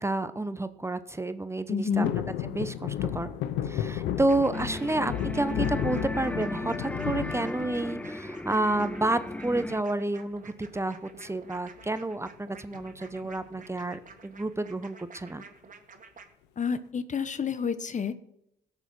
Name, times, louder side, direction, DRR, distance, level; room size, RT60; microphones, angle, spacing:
voice 1, 0.0-3.3 3.6-15.4, right 2 dB, 15° right, 12 dB, 0.9 m, -30 dB
voice 2, 1.7-2.1 16.6-18.2, left 6 dB, 45° left, 13 dB, 1.0 m, -29 dB
sound 1, 2.0-8.2 8.6-9.2 10.5-10.9 11.2-11.3 11.6-11.9 12.7-13.6 14.1-14.2, left 10 dB, 85° left, 0.7 m, -33 dB
sound 2, 4.3-16.2, right 5 dB, 50° right, 2.0 m, -50 dB
sound 3, 4.5-9.8, left 1 dB, 10° left, 0.5 m, -36 dB
16.5 x 6.9 x 6.0 m, 0.80 s
supercardioid pair, 50°, 18 cm